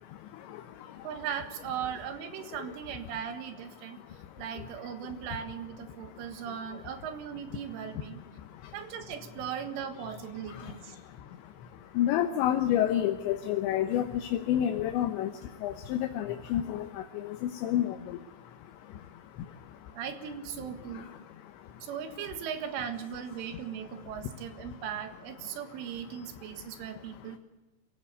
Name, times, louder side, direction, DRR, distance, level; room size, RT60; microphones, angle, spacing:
voice 1, 0.0-1.1 2.5-2.7 3.8-4.7 5.9-6.6 7.9-9.1 10.0-10.1 10.5-20.0 20.8-21.9 23.5-23.6 23.9-24.8 26.1-27.4, left 11 dB, 75° left, 6 dB, 3.2 m, -33 dB
voice 2, 1.0-4.0 4.4-8.2 8.7-11.0 20.0-21.1 21.8-27.4, right 8 dB, 90° right, 7 dB, 4.2 m, -38 dB
26.5 x 16.0 x 8.2 m, 1.2 s
omnidirectional pair, 5.5 m